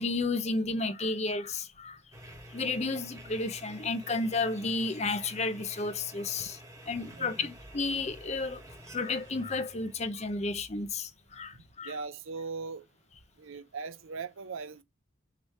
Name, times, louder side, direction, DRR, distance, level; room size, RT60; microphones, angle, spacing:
voice 1, 0.0-2.0 2.5-6.6 6.9-8.6 8.9-11.9, left 3 dB, 35° left, 0.7 m, -32 dB
sound 1, 2.1-11.2, equal, 15° right, 1.4 m, -50 dB
voice 2, 7.1-7.5 11.8-12.8 13.4-14.8, right 4 dB, 80° right, 0.6 m, -39 dB
6.6 x 3.2 x 5.5 m
head